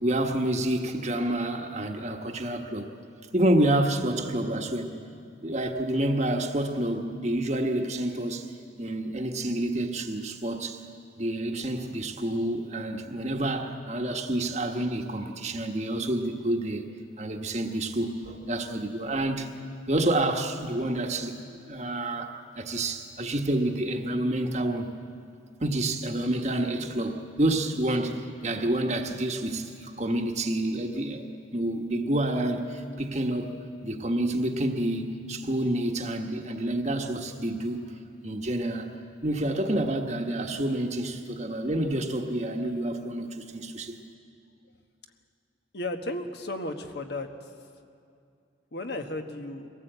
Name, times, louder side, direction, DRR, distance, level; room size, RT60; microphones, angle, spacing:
voice 1, 0.0-2.9 3.3-5.0 5.4-8.5 8.8-10.8 11.2-16.9 17.2-19.5 19.9-21.4 21.7-24.9 25.6-37.8 38.2-38.9 39.2-44.0, right 1 dB, 35° right, 4 dB, 1.3 m, -28 dB
voice 2, 45.7-47.5 48.7-49.7, left 2 dB, 55° left, 6 dB, 1.3 m, -34 dB
22.5 x 17.5 x 8.0 m, 2.4 s
head